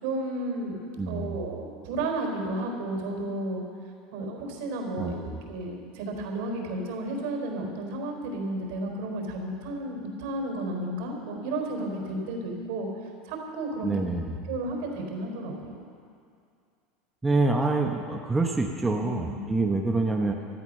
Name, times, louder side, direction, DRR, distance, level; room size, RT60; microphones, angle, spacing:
voice 1, 0.0-3.6 4.1-5.2 5.5-12.9 13.3-13.9 14.5-15.8 19.0-19.4, right 2 dB, 75° right, 2 dB, 4.2 m, -32 dB
voice 2, 1.0-1.4 5.0-5.4 13.8-14.4 17.2-20.3, right 3 dB, 10° right, 2 dB, 1.1 m, -26 dB
14.5 x 12.5 x 6.6 m, 2.3 s
supercardioid pair, 120°, 0 cm